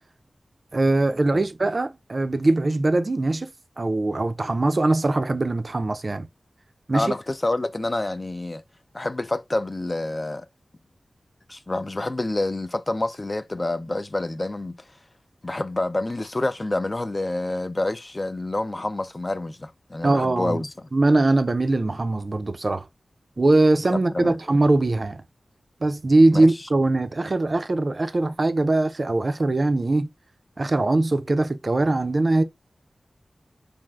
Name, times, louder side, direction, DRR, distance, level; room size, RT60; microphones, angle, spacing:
voice 1, 0.7-3.5 3.8-6.3 6.9-7.2 20.0-20.6 20.9-22.9 23.4-25.2 25.8-30.1 30.6-32.4, right 2 dB, 50° right, 0.3 m, -21 dB
voice 2, 6.9-8.6 8.9-10.5 11.5-14.8 15.4-20.7 23.9-24.4 26.3-26.5, left 2 dB, 35° left, 0.3 m, -28 dB
3.2 x 2.4 x 2.3 m
cardioid pair, 40°, 0 cm